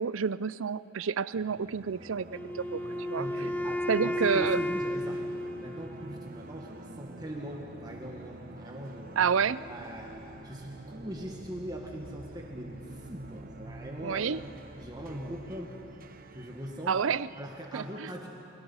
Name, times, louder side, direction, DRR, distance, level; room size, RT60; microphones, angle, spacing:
voice 1, 0.0-2.8 3.1-3.3 3.9-4.6 9.2-9.6 14.0-14.4 16.9-17.3 17.7-18.1, right 6 dB, 65° right, 17 dB, 0.5 m, -29 dB
sound 1, 1.3-17.7, right 2 dB, 40° right, 0.9 m, -47 dB
Wind instrument woodwind instrument, 2.3-6.3, left 1 dB, 10° left, 0.6 m, -33 dB
voice 2, 3.2-5.2 5.6-9.3 9.7-15.8 16.3-17.0 17.4-18.3, equal, 20° right, -1 dB, 1.7 m, -41 dB
29.0 x 23.5 x 5.6 m, 2.9 s
head